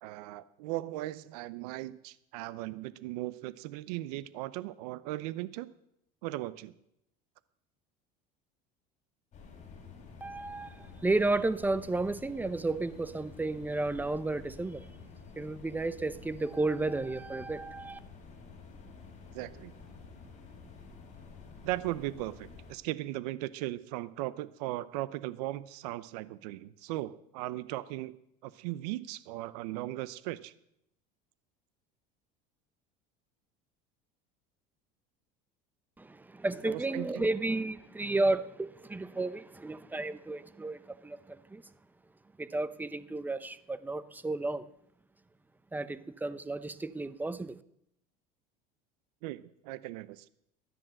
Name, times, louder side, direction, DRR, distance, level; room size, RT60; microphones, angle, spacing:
voice 1, 0.0-5.7 6.2-6.7 19.3-19.7 21.6-28.1 28.4-30.5 36.6-37.3 49.2-50.3, right 16 dB, 80° right, 17 dB, 0.7 m, -38 dB
sound 1, 9.3-22.7, left 4 dB, 35° left, 5.5 m, -50 dB
voice 2, 10.2-14.8 15.4-18.0 36.0-41.6 42.4-44.6 45.7-47.6, right 2 dB, 10° right, 15 dB, 0.8 m, -32 dB
14.0 x 10.5 x 7.8 m, 0.78 s
supercardioid pair, 105°, 20 cm